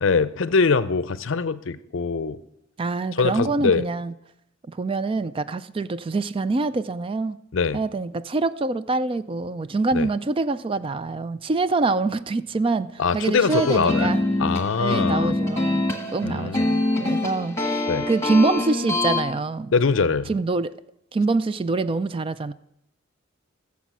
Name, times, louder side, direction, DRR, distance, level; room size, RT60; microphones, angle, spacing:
voice 1, 0.0-2.4 3.2-3.8 7.5-7.8 9.9-10.1 13.0-15.3 16.2-16.6 17.9-18.1 19.7-20.3, left 4 dB, 65° left, 16 dB, 0.5 m, -23 dB
voice 2, 2.8-4.1 4.7-7.4 7.7-14.2 14.8-15.8 16.1-19.7 20.3-20.7 21.1-22.5, right 3 dB, 25° right, 14 dB, 0.3 m, -25 dB
sound 1, 13.4-19.2, left 2 dB, 15° left, 1.4 m, -25 dB
14.5 x 7.2 x 6.1 m, 0.81 s
head